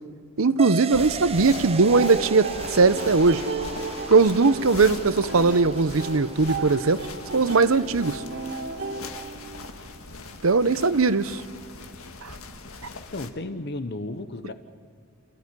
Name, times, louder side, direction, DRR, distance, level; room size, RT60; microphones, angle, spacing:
voice 1, 0.4-3.4 4.1-7.0 7.3-8.2 10.4-11.4 12.2-12.3, right 4 dB, 70° right, 0.8 m, -20 dB
sound 1, 0.6-9.6, right 5 dB, 30° right, 0.6 m, -38 dB
sound 2, 0.9-13.3, left 3 dB, 80° left, 1.7 m, -40 dB
sound 3, 1.9-9.9, right 3 dB, 55° right, 3.0 m, -35 dB
voice 2, 13.1-14.5, left 2 dB, 55° left, 0.9 m, -33 dB
28.5 x 15.0 x 9.6 m
head